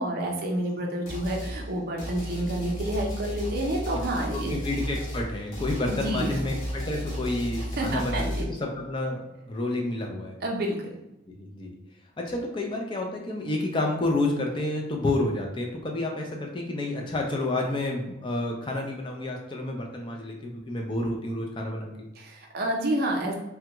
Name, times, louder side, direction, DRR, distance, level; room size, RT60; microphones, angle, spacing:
voice 1, 0.0-4.5 5.8-6.3 7.8-8.4 10.4-10.9 22.2-23.3, right 1 dB, 50° right, 0 dB, 0.5 m, -29 dB
sound 1, 1.1-1.6 2.0-8.4, equal, 85° left, 1.0 m, -33 dB
voice 2, 4.3-10.4 11.3-11.7 12.2-22.1, left 2 dB, 25° left, 1 dB, 0.4 m, -30 dB
3.4 x 2.3 x 2.9 m, 0.93 s
head